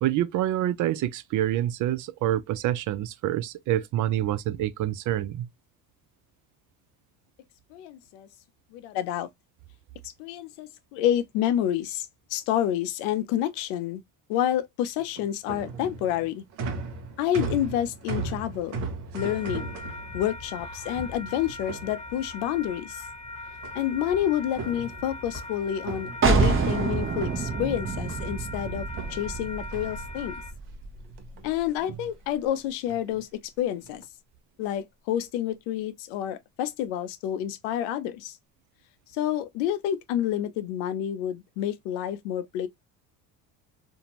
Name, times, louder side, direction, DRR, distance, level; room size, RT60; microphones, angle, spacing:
voice 1, 0.0-5.5, right 12 dB, 45° right, 0.4 m, -27 dB
voice 2, 7.7-8.3 8.7-9.3 10.2-14.0 14.3-16.4 17.2-18.8 19.1-19.8 20.1-23.0 23.7-30.4 31.4-34.0 34.6-38.3 39.1-42.7, left 11 dB, 75° left, 0.6 m, -29 dB
sound 1, 15.0-22.5 23.6-24.1 24.4-26.9 27.2-28.4 28.9-30.6 31.0-31.5 31.8-32.1 32.9-33.2 33.7-34.0, right 4 dB, 65° right, 0.9 m, -38 dB
sound 2, 19.2-30.5, left 2 dB, 15° left, 0.9 m, -40 dB
sound 3, 26.2-31.8, right 4 dB, 30° right, 0.8 m, -27 dB
2.6 x 2.1 x 2.9 m
hypercardioid pair, 70°, 44 cm